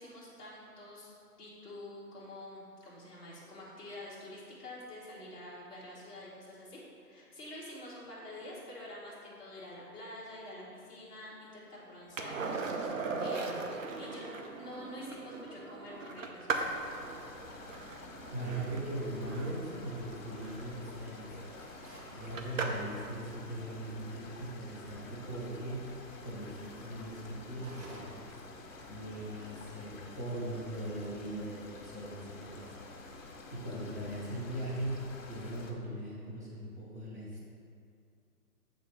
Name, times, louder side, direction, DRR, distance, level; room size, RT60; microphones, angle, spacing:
voice 1, 0.0-13.7 14.0-16.7, left 1 dB, 10° left, -8 dB, 1.0 m, -47 dB
Skateboard, 12.2-23.0 25.6-25.7, right 4 dB, 55° right, 0.7 m, -39 dB
sound 1, 16.6-35.7, left 3 dB, 55° left, 1.2 m, -50 dB
voice 2, 18.3-21.3 21.6-21.7 22.1-25.9 26.2-28.3 28.9-37.4, right 1 dB, 10° right, -7 dB, 0.5 m, -40 dB
sound 2, 21.5-22.2 27.4-28.4, right 2 dB, 90° right, 1.4 m, -52 dB
8.2 x 3.7 x 4.8 m, 2.4 s
hypercardioid pair, 145°, 48 cm